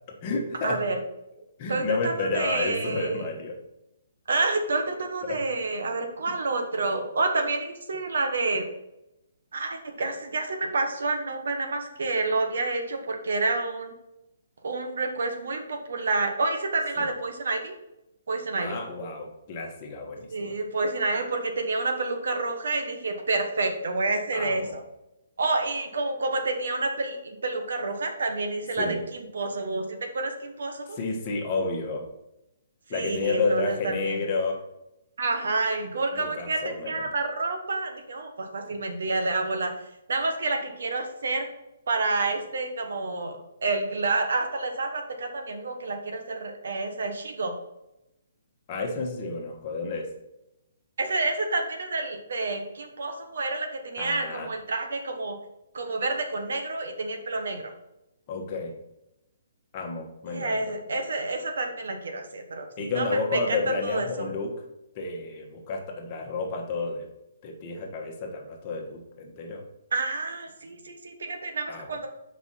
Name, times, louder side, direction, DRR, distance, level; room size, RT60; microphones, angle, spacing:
voice 1, 0.1-0.9 1.6-3.6 5.2-5.4 17.0-17.1 18.6-20.6 24.3-24.7 28.8-29.0 30.9-32.1 32.9-34.7 36.1-37.1 38.7-38.8 48.7-50.2 54.0-54.5 58.3-58.8 59.7-60.7 62.8-64.6 64.9-67.1 67.4-69.6 71.7-71.9, left 3 dB, 35° left, 1 dB, 1.4 m, -31 dB
voice 2, 0.6-1.0 1.7-3.2 4.3-8.7 9.5-13.9 14.6-17.7 18.3-18.8 20.3-24.8 25.4-31.0 32.9-34.2 35.2-39.7 40.1-41.5 41.9-47.5 51.0-55.4 55.7-57.7 60.3-63.1 63.3-63.6 63.8-64.3 69.9-72.1, right 3 dB, 75° right, 5 dB, 1.2 m, -29 dB
5.9 x 5.0 x 4.2 m, 0.88 s
hypercardioid pair, 155°, 0 cm